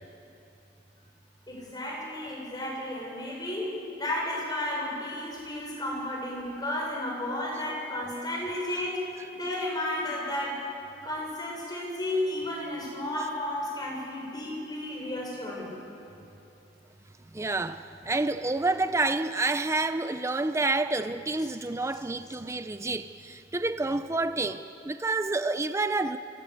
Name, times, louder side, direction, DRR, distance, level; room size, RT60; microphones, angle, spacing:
voice 1, 1.5-10.6 11.0-15.7, left 1 dB, 20° left, -2 dB, 6.0 m, -33 dB
voice 2, 17.3-26.2, right 2 dB, 15° right, 10 dB, 0.5 m, -29 dB
25.5 x 17.5 x 8.1 m, 2.9 s
head